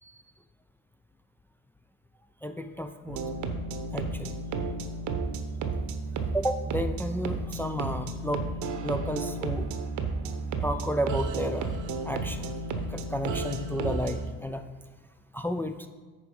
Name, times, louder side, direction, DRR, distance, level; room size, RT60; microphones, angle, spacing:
voice 1, 2.4-3.2 3.9-4.3 6.3-8.4 8.8-9.7 10.6-11.8 12.0-12.5 12.9-14.6 15.3-15.9, equal, 5° left, 7 dB, 0.4 m, -32 dB
sound 1, 3.1-14.3, right 3 dB, 70° right, 1.0 m, -32 dB
9.1 x 4.8 x 5.3 m, 1.4 s
cardioid pair, 100°, 31 cm